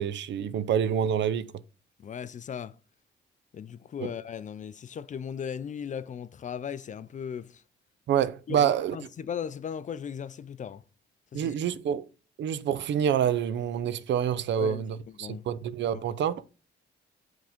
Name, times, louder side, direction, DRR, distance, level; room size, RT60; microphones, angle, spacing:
voice 1, 0.0-1.5 4.0-4.1 8.1-9.0 11.3-12.1 12.4-16.4, right 9 dB, 65° right, 0.6 m, -27 dB
voice 2, 2.0-2.8 3.5-7.6 8.5-10.8 11.3-11.5 14.6-15.4 15.9-16.0, left 7 dB, 40° left, 0.4 m, -37 dB
6.0 x 3.7 x 5.0 m
cardioid pair, 90°, 20 cm